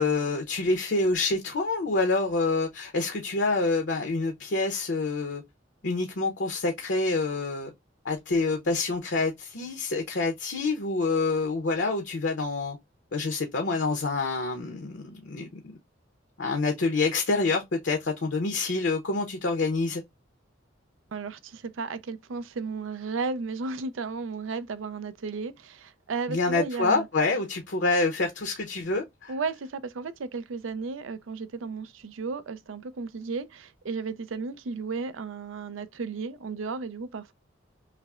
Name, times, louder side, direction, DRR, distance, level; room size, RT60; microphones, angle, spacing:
voice 1, 0.0-5.4 5.8-7.7 8.0-12.8 13.1-15.6 16.4-20.0 26.3-29.3, left 3 dB, 65° left, 0.7 m, -27 dB
voice 2, 21.1-27.1 29.3-37.3, right 4 dB, 90° right, 0.5 m, -34 dB
5.6 x 2.0 x 2.3 m
head